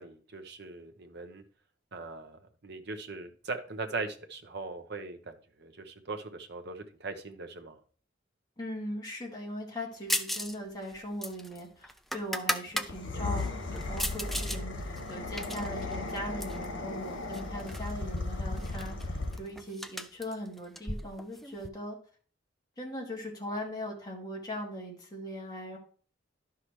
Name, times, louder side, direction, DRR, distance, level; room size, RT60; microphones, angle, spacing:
voice 1, 0.0-1.4 1.9-7.8, right 3 dB, 60° right, 1.0 m, -40 dB
voice 2, 8.6-22.0 22.8-25.8, equal, 20° left, 2.2 m, -40 dB
sound 1, 10.1-10.6 10.8-12.9 13.4-14.6 15.0-16.7 17.3-17.9 18.2-18.3 18.6-21.7, equal, ahead, 0.4 m, -36 dB
sound 2, 12.8-19.6, left 2 dB, 85° left, 2.0 m, -36 dB
11.5 x 5.8 x 3.2 m
head